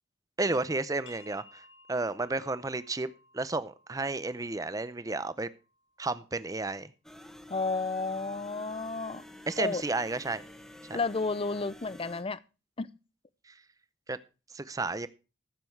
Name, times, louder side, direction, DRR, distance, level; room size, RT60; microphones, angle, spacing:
voice 1, 0.4-1.6 1.9-3.1 3.3-5.5 6.0-6.9 9.5-10.4 10.9-11.0 14.1-14.2 14.5-15.1, right 2 dB, 20° right, 0.6 m, -32 dB
sound 1, 1.0-6.4, left 2 dB, 80° left, 4.2 m, -59 dB
sound 2, 7.0-12.2, left 1 dB, 5° left, 1.2 m, -49 dB
voice 2, 7.5-9.2 9.6-9.8 10.9-12.4 12.8-12.9, left 3 dB, 30° left, 0.5 m, -31 dB
14.5 x 7.6 x 4.6 m
head